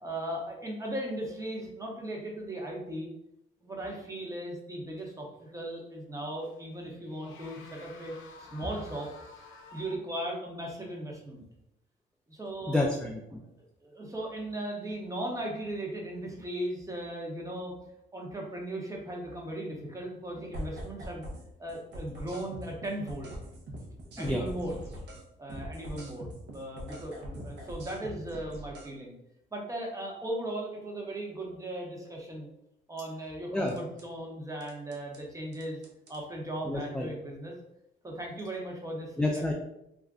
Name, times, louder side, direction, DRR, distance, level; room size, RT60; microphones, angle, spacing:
voice 1, 0.0-3.1 3.6-9.1 9.7-11.4 12.3-12.8 13.8-17.7 18.1-21.3 21.6-23.4 24.2-24.8 25.4-29.1 29.5-32.5 32.9-35.8 36.1-37.5 38.0-39.5, right 1 dB, 15° right, -1 dB, 0.8 m, -37 dB
sound 1, 5.0-5.1 6.4-6.6 7.0-10.0, left 3 dB, 80° left, 0.5 m, -50 dB
voice 2, 12.7-13.4 24.2-24.4 33.5-33.7 36.6-37.1 39.2-39.5, left 1 dB, 5° left, -1 dB, 0.3 m, -29 dB
sound 2, 20.5-21.4 21.7-25.2 25.5-28.9 33.7-34.0 34.6-35.2 35.5-36.2, equal, 60° right, 0.8 m, -42 dB
2.4 x 2.1 x 3.5 m, 0.81 s
cardioid pair, 90°, 20 cm